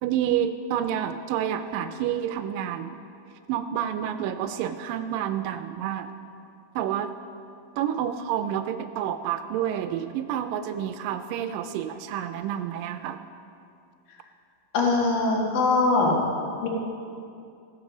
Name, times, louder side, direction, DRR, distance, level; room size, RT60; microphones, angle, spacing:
voice 1, 0.0-3.0 3.5-6.1 6.8-7.1 7.8-13.2, right 10 dB, 80° right, 9 dB, 2.1 m, -29 dB
voice 2, 14.7-16.2 16.6-16.7, left 3 dB, 75° left, -1 dB, 3.3 m, -22 dB
15.5 x 7.8 x 6.2 m, 2.5 s
omnidirectional pair, 4.2 m